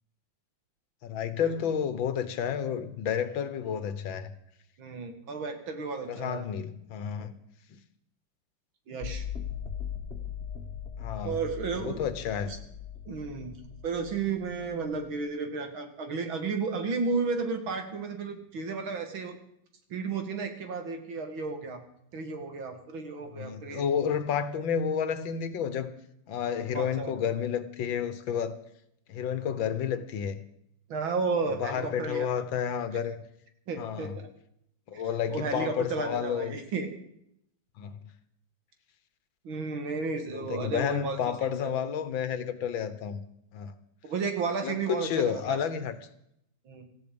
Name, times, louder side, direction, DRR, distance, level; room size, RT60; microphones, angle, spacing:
voice 1, 1.0-4.3 6.1-7.3 7.7-7.8 11.0-11.4 11.8-12.5 23.3-25.9 26.3-28.6 29.1-30.4 31.6-33.2 33.8-34.1 34.9-36.6 37.8-38.1 40.3-43.2 43.5-43.7 44.6-46.0, left 8 dB, 75° left, 1.9 m, -31 dB
voice 2, 4.8-6.5 7.2-7.3 8.9-9.2 11.2-12.0 12.4-12.6 13.1-13.6 13.8-19.4 19.9-21.8 22.1-23.8 26.7-27.2 30.9-32.5 33.7-34.3 34.9-35.0 35.3-36.9 39.4-41.7 44.0-45.6 46.7-46.8, right 4 dB, 85° right, 2.7 m, -33 dB
sound 1, 9.0-15.0, left 8 dB, 35° left, 1.7 m, -39 dB
17.5 x 14.5 x 5.2 m
omnidirectional pair, 2.2 m